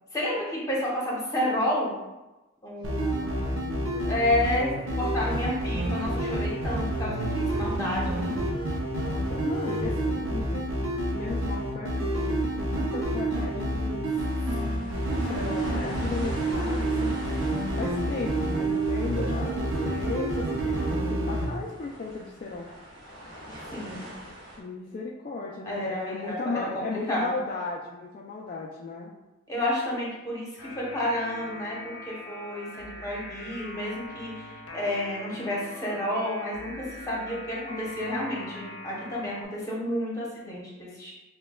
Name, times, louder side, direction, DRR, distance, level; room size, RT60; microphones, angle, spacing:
voice 1, 0.1-2.0 2.6-3.3 4.0-4.7 4.9-8.3 14.6-15.0 23.7-24.0 25.6-27.3 29.5-30.5 30.7-41.1, left 1 dB, 20° left, -5 dB, 0.9 m, -30 dB
sound 1, 2.8-21.5, right 1 dB, 80° right, 0.7 m, -28 dB
voice 2, 3.1-4.2 4.9-5.5 8.9-10.7 11.1-14.2 15.1-17.4 17.7-22.7 24.6-29.1, left 3 dB, 45° left, -3 dB, 0.3 m, -36 dB
sound 2, 14.0-24.6, equal, 25° right, 1.3 m, -42 dB
sound 3, 30.6-39.4, left 1 dB, 75° left, 0.7 m, -42 dB
5.9 x 2.2 x 2.2 m, 1.1 s
head